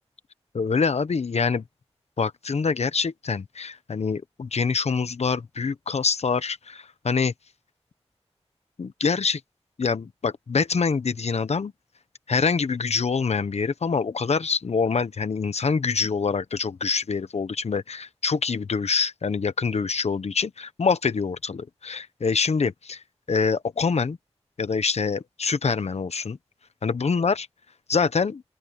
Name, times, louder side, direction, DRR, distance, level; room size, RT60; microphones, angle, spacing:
voice 1, 0.5-1.6 2.2-7.3 8.8-9.4 9.8-11.7 12.3-23.0 23.3-24.2 24.6-26.4 26.8-27.5 27.9-28.4, left 5 dB, 85° left, 1.0 m, -25 dB
open air
wide cardioid pair, 70°, 11 cm